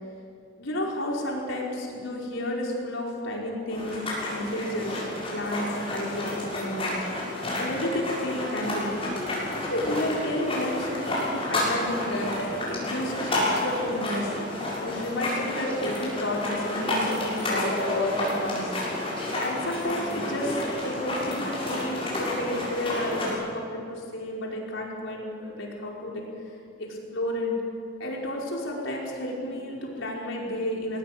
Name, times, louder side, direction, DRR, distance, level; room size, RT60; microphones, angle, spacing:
voice 1, 0.6-4.0 4.3-5.0 5.3-9.0 9.5-12.3 12.7-14.3 14.8-18.7 19.4-26.2 26.8-27.5 28.0-31.0, left 1 dB, 70° left, -2 dB, 5.0 m, -31 dB
sound 1, 3.7-23.3, left 1 dB, 30° left, 7.1 m, -30 dB
20.5 x 19.0 x 8.1 m, 2.5 s
head